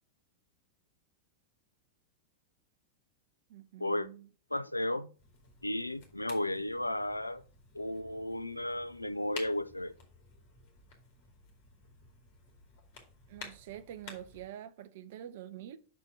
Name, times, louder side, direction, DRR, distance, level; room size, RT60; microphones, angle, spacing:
voice 1, 3.5-4.3 13.3-15.8, right 11 dB, 55° right, 0.6 m, -46 dB
voice 2, 4.5-5.1 5.6-7.4 7.7-9.9, left 1 dB, 85° left, 0.4 m, -34 dB
sound 1, 5.2-14.5, left 4 dB, 45° left, 2.3 m, -53 dB
6.2 x 4.4 x 5.7 m
figure-of-eight pair, 90°, 0 cm